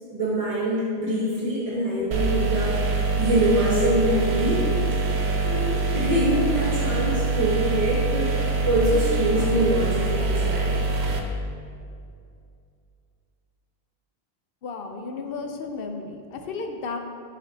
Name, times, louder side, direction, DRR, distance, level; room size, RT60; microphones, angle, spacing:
voice 1, 0.1-2.8 3.2-4.7 5.4-8.3 8.6-11.1, right 1 dB, 35° right, -6 dB, 1.1 m, -24 dB
sound 1, 2.1-11.2, right 3 dB, 90° right, 0.9 m, -24 dB
voice 2, 14.6-17.0, left 4 dB, 70° left, 4 dB, 0.7 m, -33 dB
6.8 x 5.1 x 2.8 m, 2.4 s
omnidirectional pair, 1.0 m